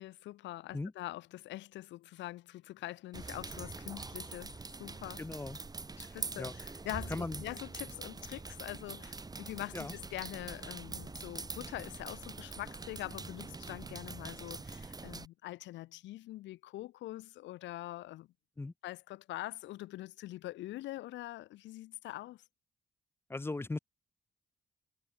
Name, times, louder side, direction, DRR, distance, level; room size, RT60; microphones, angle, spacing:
voice 1, 0.0-4.5 4.8-5.3 6.0-18.3 18.8-22.4, left 16 dB, 90° left, 0.5 m, -44 dB
sound 1, 3.1-15.3, right 3 dB, 20° right, 0.8 m, -44 dB
voice 2, 5.2-5.6 6.4-6.5 7.1-7.4 9.7-10.0 18.6-18.7 23.3-23.8, left 2 dB, 15° left, 0.4 m, -38 dB
cardioid pair, 70°, 18 cm